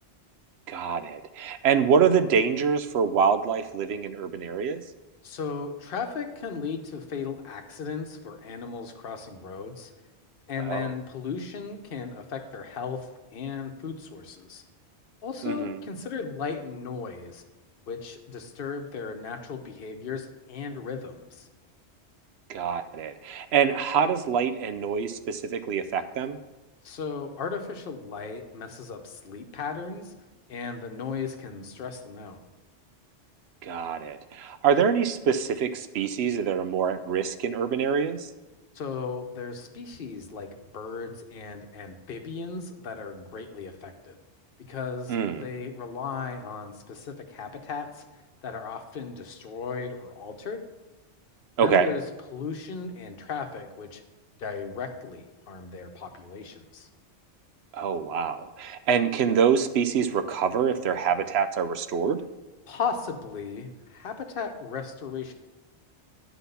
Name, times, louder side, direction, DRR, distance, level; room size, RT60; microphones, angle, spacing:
voice 1, 0.7-4.8 10.6-11.0 15.4-15.8 22.5-26.4 33.6-38.3 45.1-45.5 51.6-51.9 57.7-62.2, right 7 dB, 70° right, 10 dB, 0.8 m, -25 dB
voice 2, 5.2-9.9 10.5-14.6 15.2-17.4 17.9-21.5 26.8-30.1 30.5-32.4 38.7-44.2 44.6-48.0 48.4-50.6 51.6-52.0 52.3-54.0 54.4-56.9 62.7-65.3, left 5 dB, 55° left, 5 dB, 1.0 m, -36 dB
10.0 x 4.0 x 6.8 m, 1.1 s
omnidirectional pair, 1.2 m